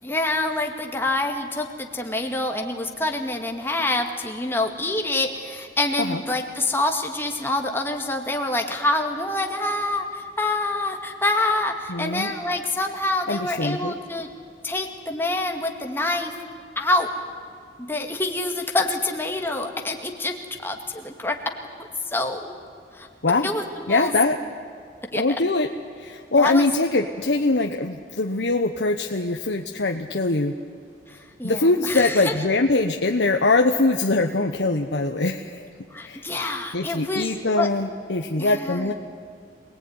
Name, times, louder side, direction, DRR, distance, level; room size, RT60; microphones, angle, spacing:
voice 1, 0.0-14.3 14.6-16.3 16.8-17.1 17.8-20.3 20.6-21.4 22.1-22.5 22.9-23.1 23.4-24.2 25.1-25.2 26.4-26.7 31.1-32.3 35.9-37.3 37.6-37.7 38.4-38.9, left 2 dB, 15° left, 3 dB, 2.2 m, -26 dB
voice 2, 11.9-12.3 13.3-13.9 23.2-23.5 23.9-24.4 25.1-25.7 26.0-30.5 31.4-35.7 36.0-36.2 36.7-38.9, left 2 dB, 85° left, 3 dB, 1.2 m, -22 dB
26.0 x 19.0 x 9.7 m, 2.3 s
head